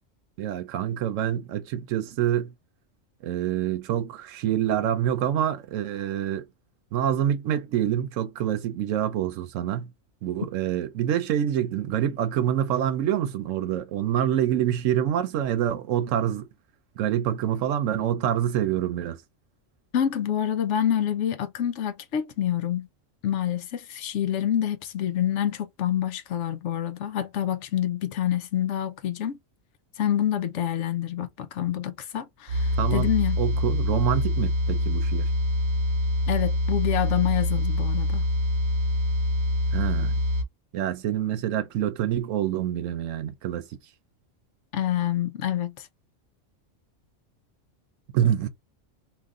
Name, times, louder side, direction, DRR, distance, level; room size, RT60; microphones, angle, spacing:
voice 1, 0.4-2.5 3.2-6.4 6.9-9.9 10.2-16.5 17.0-19.2 32.8-33.1 33.4-35.3 39.7-40.2 40.7-43.7 48.1-48.5, right 10 dB, 80° right, 1.0 m, -26 dB
voice 2, 19.9-22.9 23.2-29.4 30.0-33.4 36.3-38.2 44.7-45.9, left 10 dB, 70° left, 0.9 m, -27 dB
sound 1, 32.5-40.4, left 1 dB, 45° right, 0.7 m, -25 dB
2.9 x 2.6 x 3.5 m
omnidirectional pair, 1.3 m